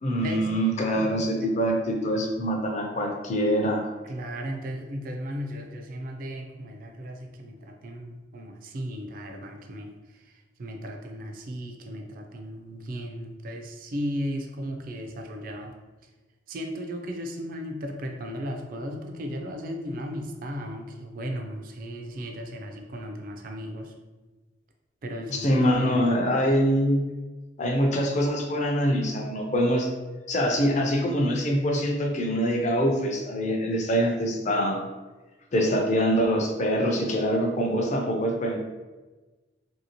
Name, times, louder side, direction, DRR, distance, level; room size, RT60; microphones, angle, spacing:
voice 1, 0.0-3.9 25.3-27.1 27.6-29.9 30.3-34.8 35.5-38.6, equal, 40° left, 2 dB, 0.4 m, -24 dB
voice 2, 4.0-15.7 16.5-23.9 25.0-26.1, equal, 50° right, 3 dB, 0.4 m, -36 dB
2.8 x 2.7 x 2.8 m, 1.2 s
head